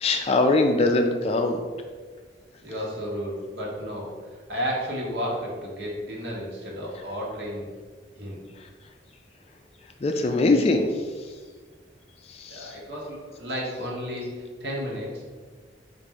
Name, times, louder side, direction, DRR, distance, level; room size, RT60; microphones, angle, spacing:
voice 1, 0.0-1.6 10.0-10.9 12.5-12.7, left 2 dB, 35° left, 4 dB, 0.3 m, -21 dB
voice 2, 2.6-4.1 4.5-7.7 8.2-8.4 12.5-14.3 14.6-15.3, equal, 70° right, -3 dB, 1.1 m, -32 dB
4.0 x 2.6 x 4.7 m, 1.5 s
head